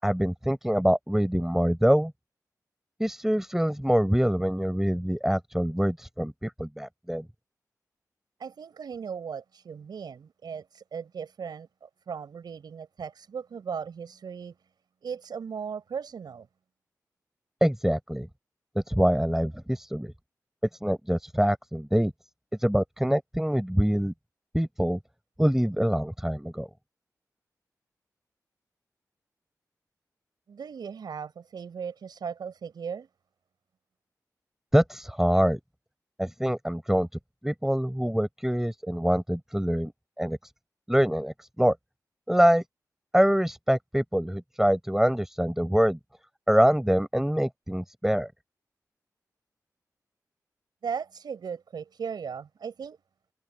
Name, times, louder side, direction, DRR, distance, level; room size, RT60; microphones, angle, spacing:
voice 1, 0.0-2.1 3.0-7.2 17.6-18.3 18.7-20.1 20.8-22.1 22.6-24.1 24.5-25.0 25.4-26.7 34.7-35.6 36.2-37.1 37.4-39.9 40.2-40.4 40.9-41.7 42.3-42.6 43.1-46.0 46.5-48.3, equal, 5° right, 5.1 m, -25 dB
voice 2, 8.4-14.6 15.0-16.5 30.5-33.1 50.8-53.0, right 6 dB, 85° right, 4.8 m, -37 dB
cardioid pair, 40°, 7 cm